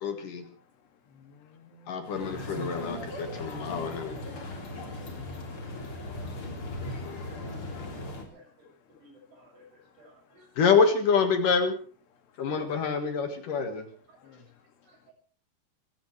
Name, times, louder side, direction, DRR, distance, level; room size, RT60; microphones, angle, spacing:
voice 1, 0.0-0.4 1.9-4.2 10.6-11.7 12.4-13.8, left 5 dB, 60° left, 6 dB, 2.9 m, -26 dB
voice 2, 1.1-1.9 4.9-5.8 14.2-14.5, left 4 dB, 85° left, 6 dB, 4.4 m, -55 dB
sound 1, 2.0-8.2, left 1 dB, 35° left, 3.7 m, -38 dB
voice 3, 3.5-4.0 4.3-5.4 5.7-6.4 7.2-8.1 8.3-8.7 9.0-9.6 10.0-10.5 14.9-15.1, right 1 dB, 75° right, 2 dB, 8.8 m, -56 dB
26.0 x 16.0 x 3.3 m, 0.41 s
omnidirectional pair, 4.8 m